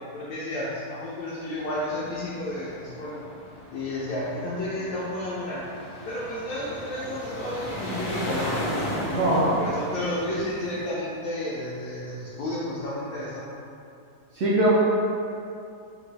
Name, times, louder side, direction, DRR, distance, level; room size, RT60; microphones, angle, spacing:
voice 1, 0.1-3.2 3.7-5.6 6.0-8.6 9.1-13.5, left 1 dB, 75° left, -8 dB, 1.0 m, -32 dB
sound 1, 1.5-10.9, equal, 55° left, 0.4 m, -35 dB
voice 2, 9.1-9.5 14.3-14.7, right 1 dB, 65° right, -8 dB, 0.6 m, -21 dB
3.6 x 2.1 x 3.3 m, 2.5 s
omnidirectional pair, 1.7 m